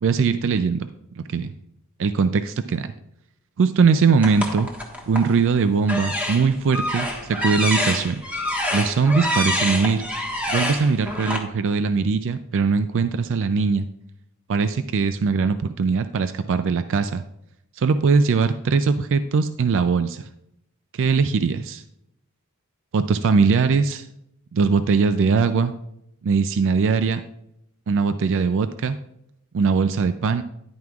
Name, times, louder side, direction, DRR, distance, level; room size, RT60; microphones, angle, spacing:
voice 1, 0.0-0.9 1.2-1.5 2.0-2.9 3.6-4.7 5.1-8.2 8.7-10.0 10.5-13.9 14.5-17.2 17.8-20.3 20.9-21.8 22.9-24.1 24.5-25.7 26.2-27.2 27.9-29.0 29.5-30.4, right 5 dB, 60° right, 11 dB, 0.4 m, -21 dB
sound 1, 4.2-5.3 5.8-11.4, left 1 dB, 5° right, 1.3 m, -26 dB
10.5 x 9.4 x 2.4 m, 0.78 s
head